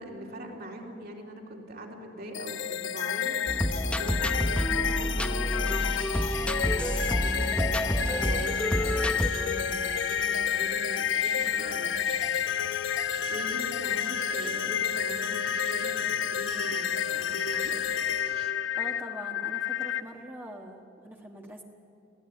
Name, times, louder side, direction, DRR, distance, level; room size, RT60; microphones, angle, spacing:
voice 1, 0.0-12.2 12.7-13.0 13.3-17.8, equal, 55° right, 0 dB, 3.7 m, -42 dB
sound 1, 2.3-20.0, left 8 dB, 75° left, 0.9 m, -30 dB
sound 2, 3.5-9.3, equal, 5° left, 0.9 m, -28 dB
sound 3, 5.7-18.5, right 4 dB, 35° right, 2.8 m, -48 dB
voice 2, 18.4-21.6, right 1 dB, 10° right, 0 dB, 1.5 m, -44 dB
27.0 x 17.0 x 9.9 m, 2.6 s
head